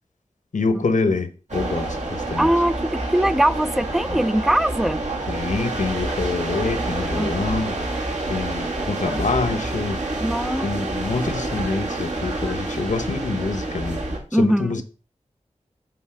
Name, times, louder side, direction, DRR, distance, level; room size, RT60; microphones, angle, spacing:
voice 1, 0.5-2.5 4.1-4.2 5.3-7.8 8.3-10.0 10.6-14.0 14.3-14.8, left 3 dB, 85° left, 1.0 m, -26 dB
sound 1, 1.5-14.2, right 2 dB, 75° right, 2.4 m, -28 dB
voice 2, 2.4-5.0 7.2-7.3 10.2-10.7 14.3-14.8, right 1 dB, ahead, 0.3 m, -21 dB
8.1 x 4.1 x 6.1 m
wide cardioid pair, 65°, 13 cm